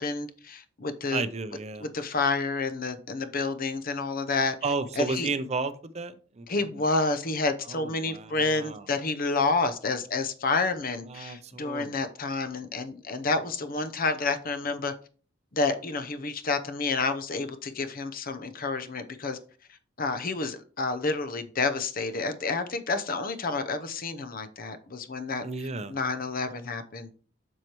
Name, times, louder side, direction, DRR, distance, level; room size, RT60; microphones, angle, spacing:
voice 1, 0.0-1.2 1.8-4.6 5.0-5.3 6.5-14.9 15.5-19.4 20.0-25.5 25.9-27.1, left 3 dB, 45° left, 0.8 m, -29 dB
voice 2, 1.1-1.9 4.6-6.7 7.7-8.8 11.0-11.9 25.4-26.0, right 3 dB, 35° right, 0.6 m, -33 dB
7.5 x 6.4 x 3.0 m
head